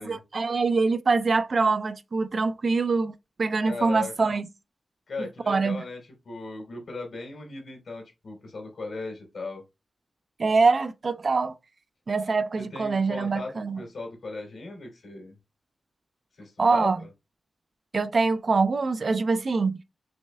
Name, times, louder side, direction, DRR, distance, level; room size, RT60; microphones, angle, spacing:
voice 1, 0.0-4.5 5.5-5.8 10.4-11.5 12.1-13.8 16.6-17.0 17.9-19.8, right 4 dB, 55° right, 0.4 m, -24 dB
voice 2, 3.7-4.3 5.1-6.0 6.2-9.6 12.6-15.3 16.4-16.9, left 3 dB, 70° left, 2.8 m, -37 dB
6.2 x 3.2 x 2.2 m
wide cardioid pair, 80°, 0 cm